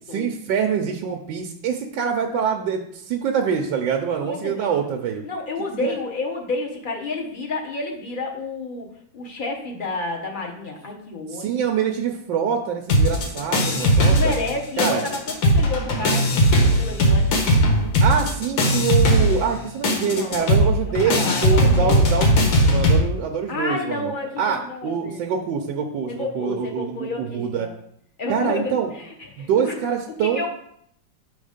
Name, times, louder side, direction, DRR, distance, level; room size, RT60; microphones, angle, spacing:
voice 1, 0.1-5.2 5.6-6.0 11.3-14.3 14.8-15.0 18.0-27.7 28.3-28.9 29.4-30.5, right 7 dB, 75° right, 3 dB, 1.3 m, -25 dB
voice 2, 4.2-4.9 5.2-8.9 9.1-11.5 13.8-17.3 20.1-20.5 21.0-22.0 23.5-25.3 26.1-27.7 28.2-29.8 30.3-30.5, left 3 dB, 40° left, 1 dB, 0.8 m, -30 dB
sound 1, 12.9-14.5 14.8-23.0, equal, 90° left, 1.9 m, -18 dB
6.3 x 3.9 x 5.0 m, 0.70 s
omnidirectional pair, 2.1 m